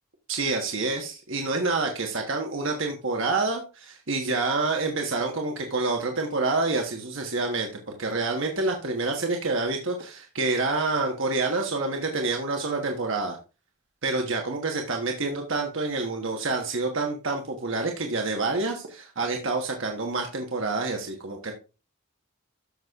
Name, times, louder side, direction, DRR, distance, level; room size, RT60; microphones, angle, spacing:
voice 1, 0.3-7.7 8.0-13.4 14.0-21.5, right 3 dB, 65° right, 2 dB, 1.3 m, -27 dB
13.5 x 6.2 x 2.4 m, 0.31 s
head